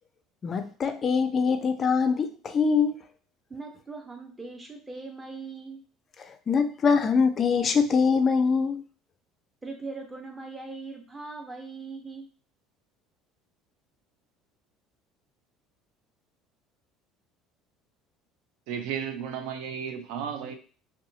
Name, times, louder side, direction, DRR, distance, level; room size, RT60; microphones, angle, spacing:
voice 1, 0.4-2.9 6.2-8.8, left 5 dB, 35° left, 0.3 m, -23 dB
voice 2, 3.5-5.8 9.6-12.3, right 3 dB, 15° right, 0.7 m, -40 dB
voice 3, 18.7-20.5, right 8 dB, 75° right, 0.4 m, -33 dB
2.7 x 2.2 x 2.7 m
supercardioid pair, 100°, 0 cm